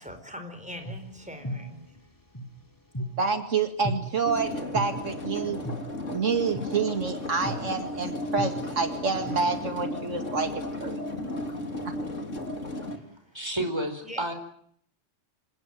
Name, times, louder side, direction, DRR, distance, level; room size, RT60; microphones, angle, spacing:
voice 1, 0.0-2.0 14.0-14.3, left 1 dB, 5° right, 7 dB, 4.7 m, -42 dB
sound 1, 0.7-3.4 3.8-4.0 4.7-4.9 5.6-5.8 6.5-6.7 7.4-7.6 8.4-9.9 10.2-11.9, equal, 15° left, 3.1 m, -36 dB
voice 2, 3.2-5.6 6.0-11.3, right 5 dB, 80° right, 6 dB, 2.5 m, -28 dB
sound 2, 4.2-13.0, left 1 dB, 85° left, 3.5 m, -34 dB
voice 3, 13.3-14.3, right 1 dB, 20° right, 6 dB, 4.8 m, -30 dB
27.0 x 18.5 x 9.3 m, 0.66 s
omnidirectional pair, 1.3 m